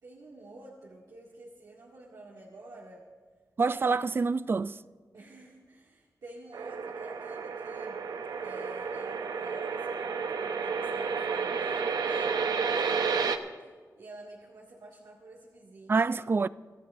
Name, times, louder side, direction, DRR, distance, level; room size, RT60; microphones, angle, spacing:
voice 1, 0.0-3.0 5.1-8.0 8.4-13.4 14.0-16.1, right 2 dB, 70° right, 2.0 m, -50 dB
voice 2, 3.6-4.8 15.9-16.5, right 4 dB, 35° right, 0.3 m, -26 dB
sound 1, 6.5-13.4, right 5 dB, 85° right, 0.8 m, -31 dB
25.5 x 14.0 x 2.6 m
wide cardioid pair, 105°, 7 cm